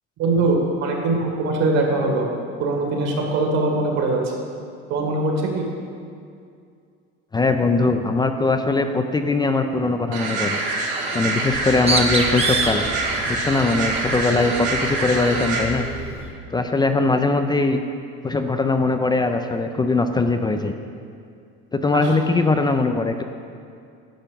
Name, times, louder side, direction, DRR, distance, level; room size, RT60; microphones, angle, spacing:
voice 1, 0.2-2.3 2.6-4.2 4.9-5.7 21.9-22.1, right 2 dB, 60° right, 1 dB, 2.1 m, -22 dB
voice 2, 7.3-10.6 11.1-12.9 13.3-15.9 16.5-17.8 18.2-20.7 21.7-23.2, left 3 dB, 15° left, 6 dB, 0.4 m, -21 dB
sound 1, 10.1-15.6, right 3 dB, 90° right, 1.6 m, -25 dB
Bird, 11.5-16.3, right 3 dB, 20° right, 1.0 m, -28 dB
10.5 x 5.8 x 5.3 m, 2.4 s
supercardioid pair, 100°, 29 cm